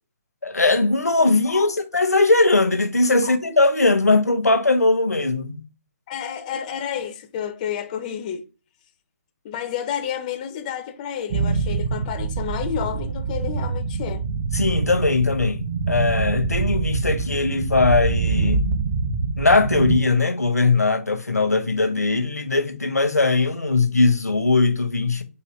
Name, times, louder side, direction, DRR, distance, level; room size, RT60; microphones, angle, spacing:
voice 1, 0.4-5.6 14.5-18.7 19.4-25.2, left 3 dB, 80° left, 0.8 m, -20 dB
voice 2, 6.1-8.4 9.4-14.2, left 8 dB, 30° left, 0.5 m, -30 dB
sound 1, 11.3-20.0, right 4 dB, 30° right, 0.6 m, -25 dB
5.0 x 2.8 x 3.1 m
figure-of-eight pair, 135°, 8 cm